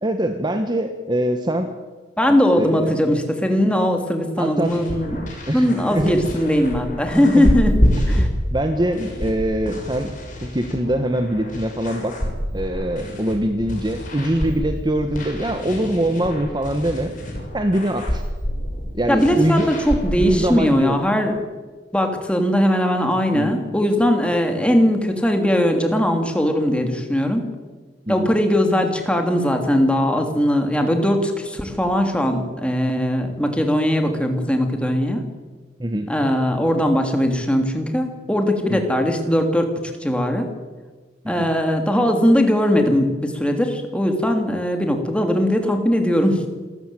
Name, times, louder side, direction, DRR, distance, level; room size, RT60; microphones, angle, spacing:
voice 1, 0.0-1.7 2.6-2.9 4.4-4.7 5.5-6.1 7.3-7.5 8.1-10.1 10.4-12.1 12.5-17.1 17.5-18.2 18.9-19.7 20.1-21.0 23.3-23.5 28.1-28.3 35.8-36.1 38.7-38.9 41.2-41.5, right 1 dB, 25° right, 6 dB, 1.5 m, -23 dB
voice 2, 2.2-5.2 5.5-7.7 8.1-8.3 19.1-21.3 21.9-27.5 28.1-35.2 36.1-39.7 40.0-40.5 41.3-46.5, equal, 5° left, 4 dB, 3.0 m, -19 dB
sound 1, 4.6-20.3, equal, 45° left, 6.7 m, -27 dB
27.0 x 14.0 x 9.3 m, 1.3 s
head